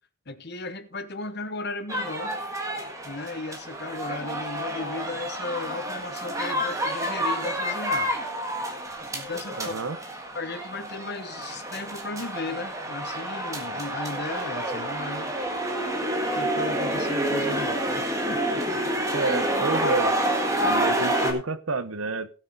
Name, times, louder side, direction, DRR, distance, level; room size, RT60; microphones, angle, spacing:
voice 1, 0.3-2.4 3.0-8.1 9.1-9.7 10.3-15.3 16.3-18.9, left 3 dB, 50° left, 1.1 m, -35 dB
sound 1, 1.9-21.3, right 1 dB, 15° right, 1.7 m, -28 dB
voice 2, 9.6-10.0 19.1-20.2 20.6-22.3, right 3 dB, 70° right, 1.0 m, -29 dB
17.0 x 6.6 x 4.0 m
head